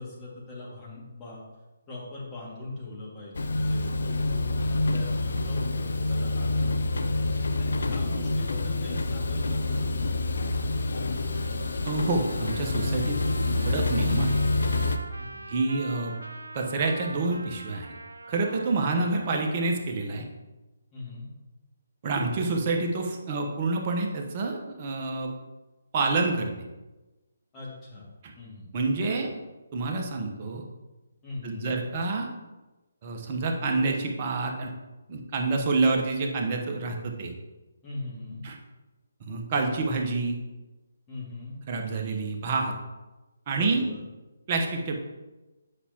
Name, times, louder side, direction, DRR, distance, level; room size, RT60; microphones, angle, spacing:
voice 1, 0.0-1.4 1.9-7.2 7.6-10.2 15.2-15.4 20.9-21.3 27.5-28.1 28.3-28.7 29.0-29.3 31.2-31.7 37.8-38.5 41.1-41.6 43.5-44.0, left 2 dB, 20° left, -6 dB, 2.1 m, -41 dB
sound 1, 3.3-15.0, left 2 dB, 65° left, 0.5 m, -27 dB
Trumpet, 11.3-19.7, right 2 dB, 80° right, 0.5 m, -43 dB
voice 2, 11.8-13.2 13.6-14.3 15.5-16.1 16.5-17.9 18.3-20.3 22.0-25.3 25.9-26.5 28.7-29.3 29.7-30.6 31.4-32.3 33.0-34.7 35.1-37.3 38.4-38.6 39.3-40.4 41.7-42.7 43.5-43.8 44.5-45.0, right 3 dB, 35° right, 2 dB, 1.0 m, -27 dB
8.1 x 5.6 x 2.9 m, 1.1 s
figure-of-eight pair, 145°, 0 cm